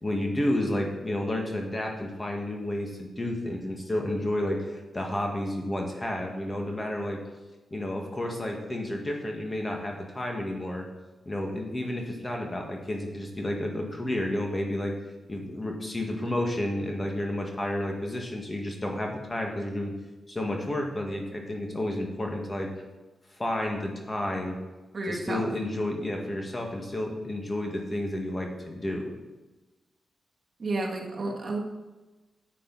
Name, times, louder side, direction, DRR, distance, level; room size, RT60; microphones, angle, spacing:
voice 1, 0.0-7.2 7.7-10.9 11.3-14.9 15.3-19.9 20.3-22.7 23.4-24.6 25.1-29.1, left 1 dB, 25° left, 1 dB, 1.8 m, -31 dB
voice 2, 24.9-25.5 30.6-31.6, right 2 dB, 45° right, 0 dB, 1.7 m, -31 dB
10.0 x 8.4 x 4.1 m, 1.2 s
cardioid pair, 95°, 0 cm